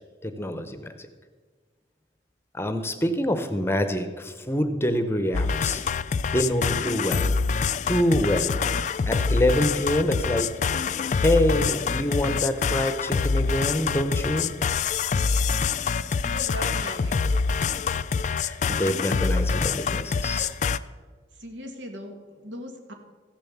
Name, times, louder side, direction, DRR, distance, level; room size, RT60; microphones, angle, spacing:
voice 1, 0.2-0.9 2.5-5.8 6.2-7.3 7.9-8.6 9.1-10.5 11.2-14.5 18.2-20.5, left 1 dB, 15° left, 8 dB, 0.7 m, -26 dB
sound 1, 5.3-20.8, left 5 dB, 40° left, 0.3 m, -26 dB
voice 2, 16.2-17.5 21.4-22.9, equal, 90° right, 4 dB, 1.8 m, -39 dB
14.5 x 7.0 x 7.1 m, 1.5 s
head